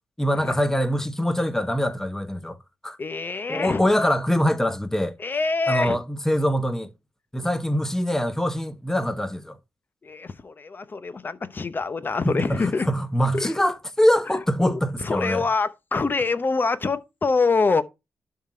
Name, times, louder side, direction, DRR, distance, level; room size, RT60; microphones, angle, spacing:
voice 1, 0.2-2.6 2.8-3.0 3.5-5.2 5.7-6.9 7.3-9.6 12.2-15.4, equal, 5° left, 0.9 m, -23 dB
voice 2, 3.0-3.8 5.2-6.0 10.0-12.9 13.3-13.5 14.6-17.8, left 4 dB, 35° left, 0.8 m, -25 dB
11.5 x 3.8 x 4.4 m
cardioid pair, 95°, 6 cm